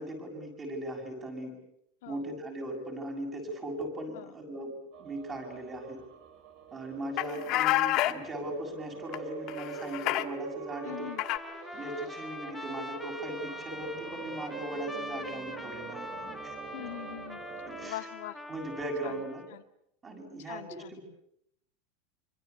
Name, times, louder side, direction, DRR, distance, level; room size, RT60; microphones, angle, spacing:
voice 1, 0.0-1.5 2.1-6.0 6.7-11.1 11.7-16.1 16.4-16.5 17.7-18.0 18.5-19.4 20.0-21.0, right 1 dB, 15° right, 2 dB, 7.2 m, -38 dB
sound 1, 4.9-17.9, right 7 dB, 35° right, 3.7 m, -46 dB
sound 2, 7.2-8.1 9.1-9.2 9.5-10.2 11.2-11.4, left 15 dB, 35° left, 1.4 m, -28 dB
Trumpet, 10.7-19.5, left 1 dB, ahead, 1.9 m, -43 dB
voice 2, 10.8-11.2 16.7-17.4 17.8-18.4 19.0-19.2 19.5-19.6 20.5-21.0, left 15 dB, 65° left, 6 dB, 1.9 m, -42 dB
27.0 x 25.5 x 8.3 m, 0.76 s
supercardioid pair, 180°, 0 cm